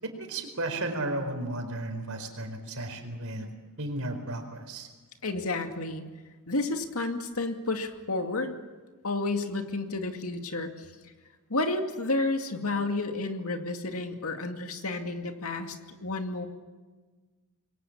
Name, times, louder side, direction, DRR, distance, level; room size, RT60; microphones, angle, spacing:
voice 1, 0.0-3.5 3.8-4.9, right 2 dB, 65° right, 6 dB, 4.5 m, -34 dB
voice 2, 5.2-6.1 6.5-8.6 9.0-10.7 11.5-16.5, left 2 dB, 70° left, 5 dB, 2.4 m, -31 dB
27.0 x 22.0 x 7.3 m, 1.3 s
head